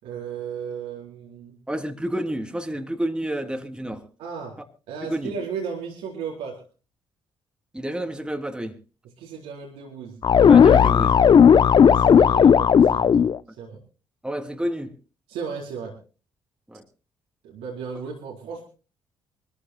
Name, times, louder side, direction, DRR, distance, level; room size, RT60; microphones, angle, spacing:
voice 1, 0.0-1.6 4.2-6.6 9.2-10.2 11.8-13.3 13.6-13.8 15.3-16.0 17.4-18.6, right 6 dB, 75° right, 4.2 m, -35 dB
voice 2, 1.7-4.0 5.1-5.3 7.7-8.7 10.5-11.2 11.9-12.2 14.2-14.9 16.7-16.8, right 1 dB, 10° right, 3.1 m, -30 dB
sound 1, 10.2-13.4, left 7 dB, 45° left, 0.7 m, -14 dB
25.0 x 14.5 x 2.3 m
hypercardioid pair, 50°, 10 cm